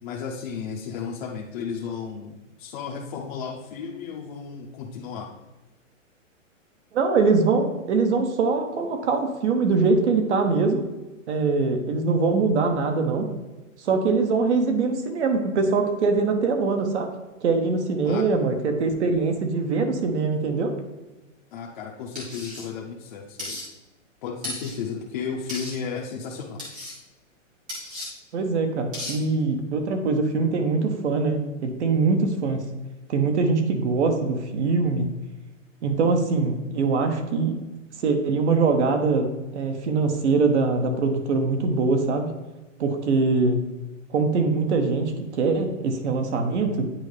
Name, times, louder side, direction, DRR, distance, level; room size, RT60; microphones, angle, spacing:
voice 1, 0.0-5.3 18.0-18.2 21.5-23.6 24.2-26.6, left 6 dB, 40° left, -2 dB, 0.7 m, -34 dB
voice 2, 6.9-10.8 11.3-13.3 13.8-17.1 17.4-20.7 28.3-32.6 33.1-35.1 35.8-37.6 38.0-42.3 42.8-43.6 44.1-46.9, right 4 dB, 60° right, 5 dB, 1.1 m, -23 dB
sound 1, 22.2-22.6 23.4-23.6 24.4-24.8 25.5-25.7 26.6-26.9 27.7-28.1 28.9-29.2, left 1 dB, 5° right, 0.3 m, -34 dB
9.1 x 4.2 x 3.3 m, 1.1 s
hypercardioid pair, 160°, 39 cm